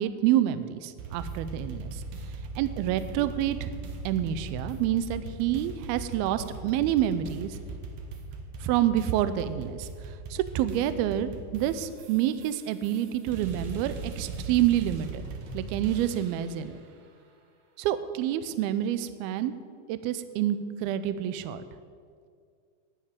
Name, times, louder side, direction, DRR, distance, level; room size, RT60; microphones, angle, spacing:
voice 1, 0.0-2.0 2.6-3.7 4.1-7.6 8.6-15.2 15.5-16.8 17.8-19.5 19.9-21.6, right 11 dB, 80° right, 12 dB, 2.3 m, -28 dB
sound 1, 1.0-16.6, right 3 dB, 65° right, 1.9 m, -39 dB
11.0 x 7.3 x 9.5 m, 2.2 s
omnidirectional pair, 4.7 m